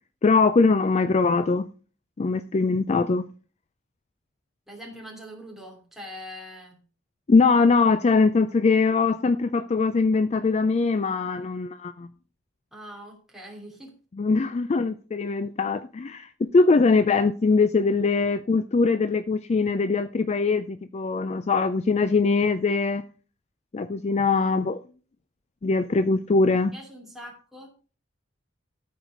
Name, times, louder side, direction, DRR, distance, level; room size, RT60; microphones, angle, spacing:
voice 1, 0.2-1.6 2.2-3.2 7.3-12.1 14.2-23.0 23.7-24.8 25.6-26.7, left 4 dB, 35° left, 0.4 m, -22 dB
voice 2, 4.7-6.8 12.7-13.9 24.3-24.6 26.7-27.7, equal, ahead, 2.8 m, -42 dB
13.0 x 4.8 x 5.1 m
head